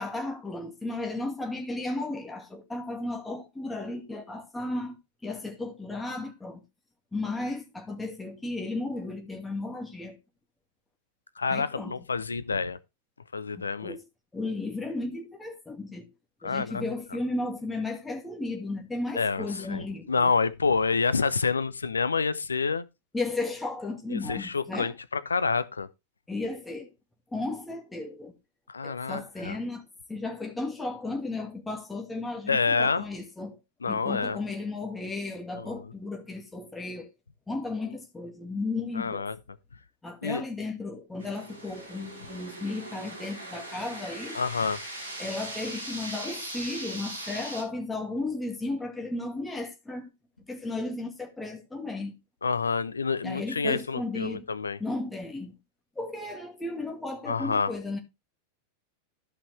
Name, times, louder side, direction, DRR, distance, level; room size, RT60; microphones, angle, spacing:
voice 1, 0.0-5.0 5.2-6.6 7.1-10.2 11.5-11.9 13.6-14.0 14.3-16.1 16.4-20.3 23.1-24.9 26.3-26.9 27.3-28.3 28.8-29.8 30.1-33.6 33.9-37.1 37.5-39.3 40.0-44.4 45.2-50.1 50.5-52.2 53.2-54.5 54.8-55.6 56.0-58.0, left 2 dB, 10° left, 2.2 m, -34 dB
voice 2, 11.4-12.8 13.3-14.0 16.4-16.8 19.2-22.8 24.1-25.9 28.7-29.6 32.5-33.0 33.8-34.4 35.5-35.7 39.0-39.3 40.2-40.4 44.3-44.8 52.4-54.8 57.3-57.7, left 4 dB, 75° left, 0.7 m, -28 dB
sound 1, 41.2-47.6, right 1 dB, 80° right, 5.5 m, -40 dB
14.0 x 5.8 x 3.4 m
figure-of-eight pair, 90°, 0 cm